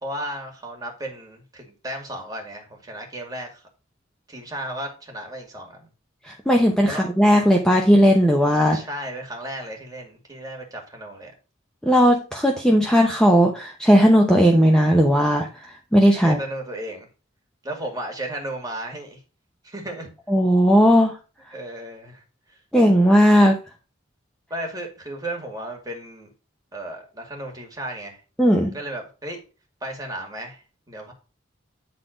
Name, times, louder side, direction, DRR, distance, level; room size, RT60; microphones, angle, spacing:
voice 1, 0.0-3.7 4.3-5.9 6.9-7.0 8.7-11.3 16.2-17.1 17.6-19.2 19.6-20.1 21.5-22.2 22.5-22.6 24.5-26.3 26.7-28.2 28.7-29.4 29.8-31.1, right 1 dB, 20° right, 1 dB, 2.2 m, -34 dB
voice 2, 6.3-8.8 11.8-15.5 15.9-16.4 20.3-21.2 22.7-23.6 28.4-28.8, equal, 5° left, 1 dB, 0.8 m, -16 dB
9.4 x 4.1 x 5.1 m, 0.34 s
head